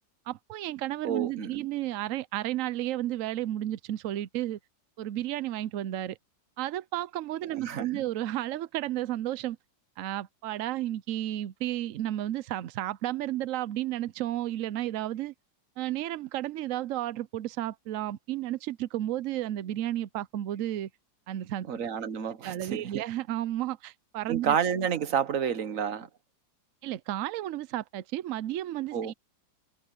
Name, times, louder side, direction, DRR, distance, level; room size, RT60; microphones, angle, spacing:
voice 1, 0.3-4.6 5.0-6.2 6.6-9.6 10.0-15.3 15.8-20.9 21.3-21.7 22.4-24.6 26.8-29.1, right 13 dB, 75° right, 0.7 m, -32 dB
voice 2, 1.0-1.6 7.5-7.9 21.7-23.0 24.3-26.1 28.9-29.1, right 8 dB, 50° right, 1.3 m, -30 dB
omnidirectional pair, 2.0 m